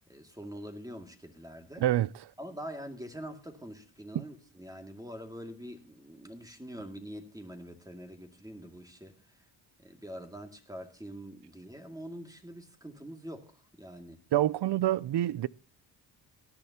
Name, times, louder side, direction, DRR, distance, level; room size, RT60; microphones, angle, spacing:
voice 1, 0.1-1.8 2.4-9.4 9.8-14.2, equal, 5° right, 2.2 m, -44 dB
voice 2, 14.3-15.5, right 13 dB, 55° right, 0.5 m, -26 dB
18.5 x 11.0 x 2.9 m
cardioid pair, 65°, 48 cm